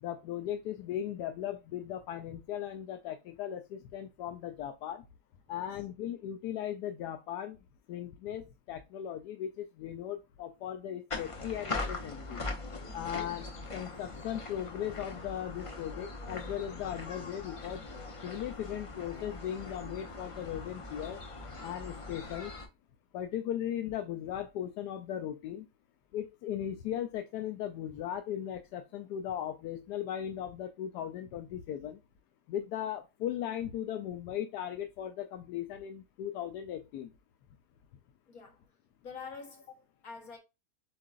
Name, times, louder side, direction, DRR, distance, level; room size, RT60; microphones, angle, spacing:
voice 1, 0.0-5.0 5.5-7.6 7.9-12.4 12.9-17.9 18.2-21.2 21.6-22.5 23.1-25.7 26.1-32.0 32.5-37.1, left 10 dB, 85° left, 1.2 m, -38 dB
sound 1, 11.1-22.7, left 3 dB, 45° left, 0.4 m, -41 dB
voice 2, 38.3-38.6 39.0-40.4, left 5 dB, 65° left, 1.8 m, -47 dB
7.5 x 2.6 x 2.4 m
omnidirectional pair, 1.7 m